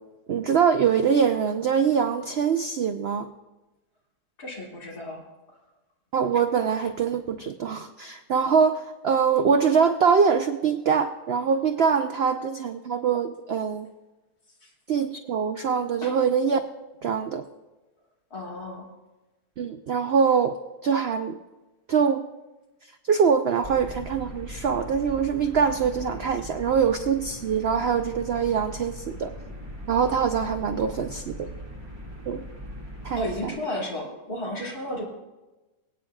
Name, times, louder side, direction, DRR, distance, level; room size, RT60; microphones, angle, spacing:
voice 1, 0.3-3.3 6.1-13.9 14.9-16.6 17.0-17.4 19.6-20.6 20.8-21.4 21.9-22.2 23.1-29.3 29.9-31.5 32.3-32.4 33.0-33.3, right 6 dB, 85° right, 7 dB, 0.5 m, -23 dB
voice 2, 4.4-5.2 14.6-14.7 16.0-16.1 18.3-18.9 33.1-35.0, left 1 dB, 65° left, -3 dB, 3.0 m, -33 dB
sound 1, 23.6-33.5, equal, 15° right, 1.8 m, -40 dB
25.0 x 8.9 x 2.4 m, 1.1 s
omnidirectional pair, 1.8 m